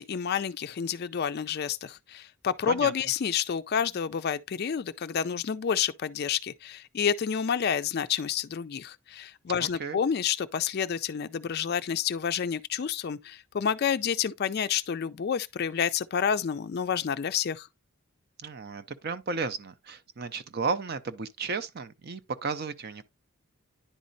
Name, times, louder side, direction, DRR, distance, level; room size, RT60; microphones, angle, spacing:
voice 1, 0.0-17.7, left 7 dB, 45° left, 0.3 m, -29 dB
voice 2, 9.6-10.0 18.4-23.0, right 4 dB, 45° right, 0.6 m, -34 dB
10.0 x 4.2 x 2.6 m
head